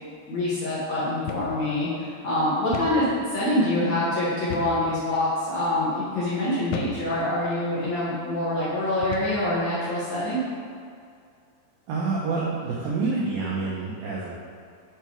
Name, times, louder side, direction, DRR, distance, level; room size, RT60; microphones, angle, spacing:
voice 1, 0.3-10.4, left 1 dB, 65° left, -10 dB, 1.7 m, -25 dB
sound 1, 1.3-1.6 1.9-2.0 2.7-3.0 4.5-4.9 5.5-5.7 6.7-7.1 7.8-8.0 9.0-9.4, left 6 dB, 85° left, 3.0 m, -34 dB
voice 2, 11.9-14.3, right 4 dB, 85° right, -5 dB, 2.0 m, -27 dB
7.8 x 5.6 x 4.7 m, 2.3 s
omnidirectional pair, 5.3 m